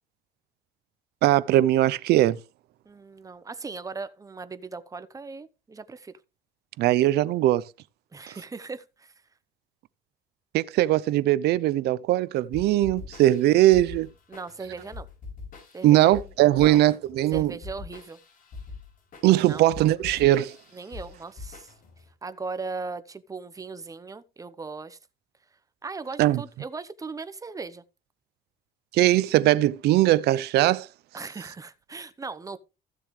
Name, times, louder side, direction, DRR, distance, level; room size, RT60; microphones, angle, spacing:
voice 1, 1.2-2.4 6.8-7.6 10.5-14.1 15.8-17.6 19.2-20.6 26.2-26.4 28.9-30.9, right 15 dB, 75° right, 0.6 m, -20 dB
voice 2, 2.9-6.2 8.1-9.1 14.3-15.1 15.7-16.8 17.3-18.2 19.5-19.7 20.7-21.7 22.2-25.0 25.8-27.8 31.1-32.6, right 4 dB, 20° right, 0.9 m, -38 dB
sound 1, 12.5-22.1, left 4 dB, 55° left, 5.2 m, -43 dB
15.0 x 6.9 x 3.2 m
cardioid pair, 110°, 17 cm